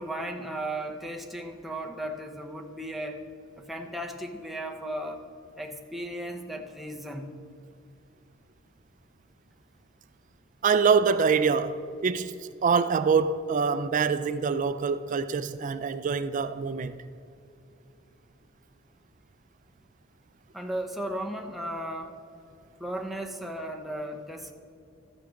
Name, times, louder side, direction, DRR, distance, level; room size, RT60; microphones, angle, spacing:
voice 1, 0.0-3.2 3.6-5.2 5.6-7.4 20.5-22.2 22.8-24.5, right 1 dB, ahead, 0.7 m, -35 dB
voice 2, 10.6-17.0, right 5 dB, 40° right, 0.3 m, -25 dB
13.5 x 9.0 x 3.8 m
head